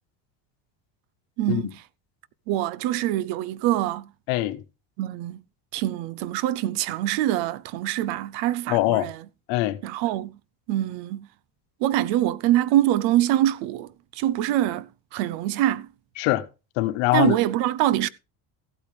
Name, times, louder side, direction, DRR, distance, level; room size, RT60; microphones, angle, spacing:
voice 1, 1.4-1.8 2.5-4.1 5.0-5.4 5.7-9.2 9.8-10.4 10.7-11.3 11.8-15.9 17.1-18.1, right 13 dB, 80° right, 0.8 m, -24 dB
voice 2, 4.3-4.6 8.7-9.1 9.5-9.8 16.2-16.4 16.8-17.3, left 17 dB, 85° left, 1.2 m, -23 dB
15.0 x 8.8 x 3.4 m
cardioid pair, 140°, 43 cm